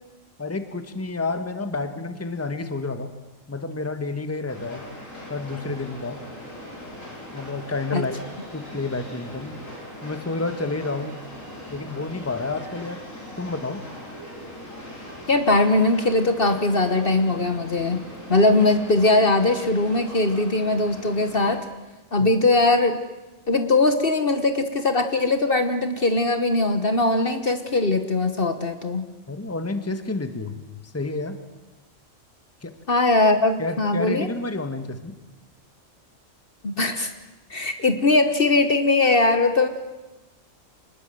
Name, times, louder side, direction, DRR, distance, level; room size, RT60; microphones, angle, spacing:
voice 1, 0.4-3.1 3.5-4.8 5.3-6.2 7.3-8.2 8.5-9.6 10.0-11.2 11.7-13.0 13.4-13.8 22.2-22.3 29.3-30.6 30.8-31.4 32.6-32.7 33.6-35.1, left 3 dB, 10° left, 9 dB, 1.4 m, -30 dB
Train, 4.5-21.6, left 1 dB, 75° left, 6.7 m, -40 dB
voice 2, 15.3-18.0 18.3-21.6 22.1-22.9 23.5-29.0 32.9-34.3 36.6-37.1 37.5-39.7, left 2 dB, 45° left, 8 dB, 1.5 m, -20 dB
25.5 x 20.5 x 7.8 m, 1.1 s
omnidirectional pair, 1.4 m